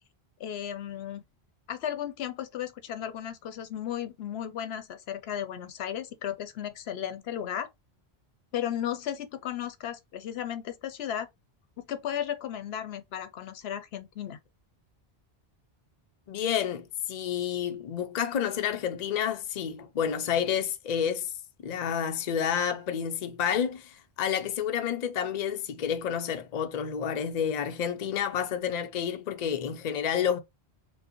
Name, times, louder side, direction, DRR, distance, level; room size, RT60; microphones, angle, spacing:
voice 1, 0.4-1.2 1.7-7.7 8.5-11.3 11.9-14.4, left 10 dB, 80° left, 0.9 m, -35 dB
voice 2, 16.3-21.3 21.6-30.4, left 8 dB, 50° left, 0.6 m, -29 dB
4.5 x 2.1 x 2.9 m
omnidirectional pair, 1.0 m